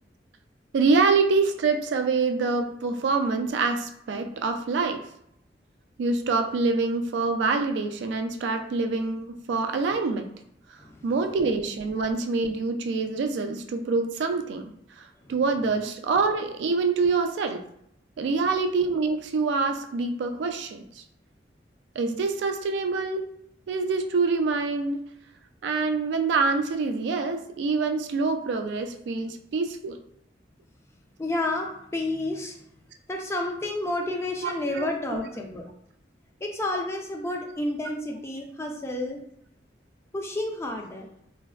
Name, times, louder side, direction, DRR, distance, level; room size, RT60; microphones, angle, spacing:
voice 1, 0.7-5.0 6.0-10.3 11.0-14.7 15.0-17.6 18.2-21.0 22.0-23.3 23.7-25.0 25.6-30.0 34.0-34.1 34.4-35.2, right 4 dB, 75° right, 6 dB, 0.3 m, -26 dB
voice 2, 31.2-32.6 33.1-35.6 36.4-39.2 40.1-41.1, left 2 dB, 15° left, 2 dB, 0.3 m, -30 dB
3.2 x 2.1 x 2.2 m, 0.73 s
head